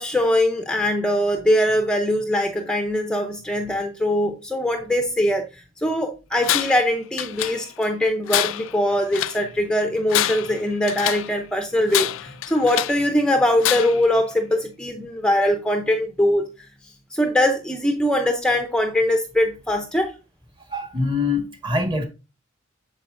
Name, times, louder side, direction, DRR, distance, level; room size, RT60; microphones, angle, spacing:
voice 1, 0.0-20.2, left 1 dB, 5° left, 0.6 m, -22 dB
Tools, 6.4-6.9 7.2-7.9 8.3-9.4 10.0-11.3 11.9-13.1 13.6-14.1, left 14 dB, 80° left, 0.3 m, -26 dB
voice 2, 20.7-22.1, left 3 dB, 25° right, 1.6 m, -24 dB
8.9 x 6.9 x 2.6 m
head